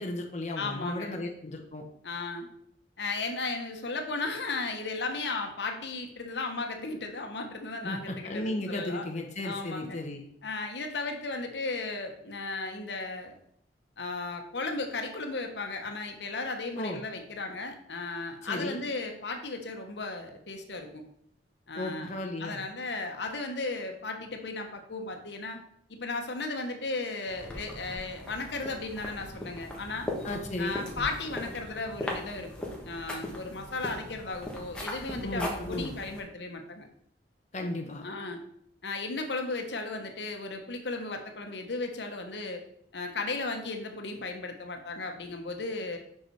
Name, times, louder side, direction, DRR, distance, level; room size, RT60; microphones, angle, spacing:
voice 1, 0.0-1.8 7.8-10.2 16.7-17.0 18.4-18.8 21.7-22.6 30.2-30.8 35.2-35.9 37.5-38.0, left 1 dB, 40° left, 2 dB, 0.8 m, -35 dB
voice 2, 0.6-1.2 2.0-2.5 3.0-9.1 9.4-10.0 10.4-13.3 14.0-21.0 21.7-22.1 22.4-25.6 25.9-30.1 30.6-32.5 32.8-36.9 38.0-38.4 38.8-42.6 42.9-46.0, left 3 dB, 75° left, 4 dB, 1.0 m, -35 dB
sound 1, 27.3-36.2, left 1 dB, 5° left, 1.3 m, -39 dB
5.9 x 5.4 x 4.6 m, 0.69 s
head